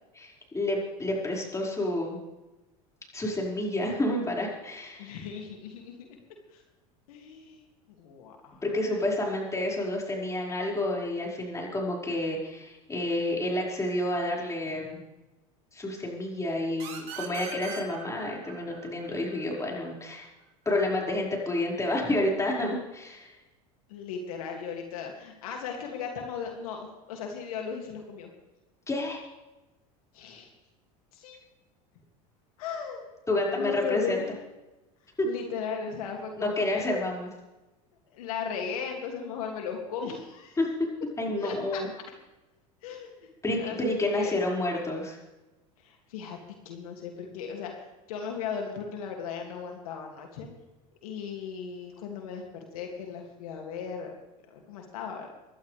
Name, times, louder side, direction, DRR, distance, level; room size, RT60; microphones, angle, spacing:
voice 1, 0.2-2.2 3.1-5.2 8.6-15.0 15.7-20.3 20.7-23.3 28.9-29.2 33.3-34.2 35.2-35.3 36.4-37.3 40.6-40.7 41.2-41.9 43.4-45.2, left 1 dB, 15° left, -2 dB, 5.4 m, -29 dB
voice 2, 5.0-6.2 6.5-6.6 7.1-7.6 8.0-8.6 23.9-28.3 30.1-30.5 31.1-31.4 32.6-33.0 33.6-34.3 35.2-36.9 38.1-40.6 41.4-41.8 42.8-43.3 43.6-44.4 45.8-46.4 46.6-47.8 48.1-50.5 51.0-54.1 54.5-55.3, left 6 dB, 80° left, 2 dB, 2.5 m, -37 dB
sound 1, 16.8-20.2, right 7 dB, 55° right, 4.1 m, -42 dB
25.0 x 12.0 x 3.4 m, 1.0 s
hypercardioid pair, 95°, 18 cm